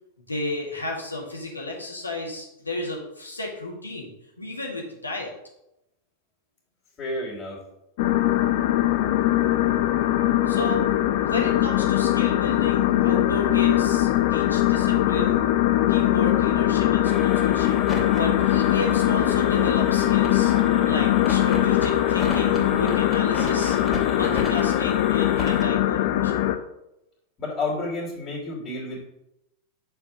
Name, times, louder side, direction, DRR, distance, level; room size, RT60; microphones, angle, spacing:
voice 1, 0.3-5.3 10.5-10.8 11.2-15.5 15.9-20.5 20.9-23.8 24.1-26.5, left 2 dB, 80° left, -2 dB, 2.2 m, -33 dB
voice 2, 7.0-7.6 27.4-29.0, left 2 dB, 30° left, -3 dB, 3.1 m, -30 dB
sound 1, 8.0-26.6, left 13 dB, 50° left, 0.6 m, -21 dB
sound 2, 17.0-25.6, left 2 dB, 10° left, 2.8 m, -35 dB
6.8 x 4.7 x 6.5 m, 0.86 s
figure-of-eight pair, 90°, 0 cm